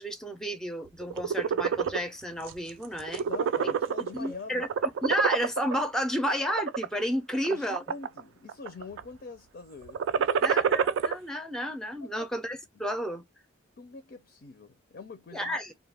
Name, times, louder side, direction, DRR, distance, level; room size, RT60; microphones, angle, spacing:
voice 1, 0.0-3.2 3.6-3.7 4.1-7.8 10.4-13.2 15.3-15.7, equal, 5° left, 0.5 m, -31 dB
sound 1, 1.0-2.0 2.5-2.7 3.0-4.3 4.6-5.7 6.4-6.8 7.4-8.2 8.5-9.0 9.9-11.1, right 7 dB, 70° right, 0.3 m, -27 dB
voice 2, 3.2-4.7 7.3-10.6 12.0-12.3 13.8-15.6, left 4 dB, 55° left, 0.5 m, -44 dB
2.3 x 2.2 x 3.3 m
head